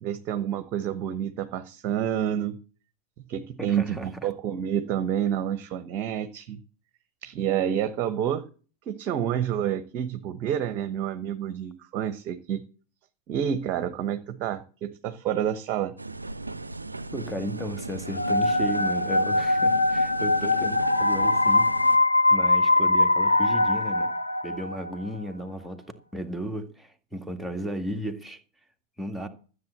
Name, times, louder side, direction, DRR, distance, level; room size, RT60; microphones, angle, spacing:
voice 1, 0.0-2.6 3.3-6.6 7.2-8.4 8.9-12.6 13.3-15.9, right 9 dB, 40° right, 1.1 m, -28 dB
voice 2, 3.6-4.3 17.1-21.7 22.3-24.1 24.4-25.8 26.1-28.4 29.0-29.3, equal, ahead, 2.0 m, -34 dB
sound 1, 16.0-22.0, right 3 dB, 80° right, 0.5 m, -36 dB
sound 2, 18.1-24.9, left 2 dB, 80° left, 0.8 m, -22 dB
13.5 x 8.0 x 6.7 m
figure-of-eight pair, 90°, 0 cm